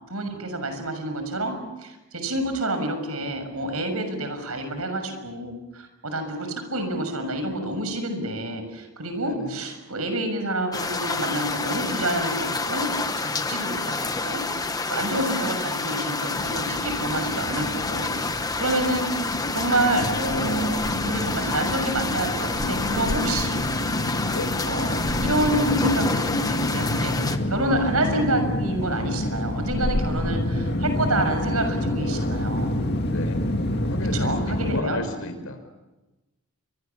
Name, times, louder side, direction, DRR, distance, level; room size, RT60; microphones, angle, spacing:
voice 1, 0.1-12.9 13.2-14.4 14.9-19.1 19.5-23.6 24.7-32.7 34.1-35.0, right 1 dB, 85° right, 7 dB, 6.6 m, -28 dB
voice 2, 9.2-9.6 14.9-15.3 24.2-24.5 33.0-33.5 33.8-35.7, left 2 dB, 70° left, 7 dB, 5.1 m, -34 dB
sound 1, 10.7-27.4, left 3 dB, 15° left, 1.1 m, -29 dB
sound 2, 16.3-34.8, left 1 dB, 50° left, 2.0 m, -28 dB
29.5 x 24.5 x 7.2 m, 1.1 s
head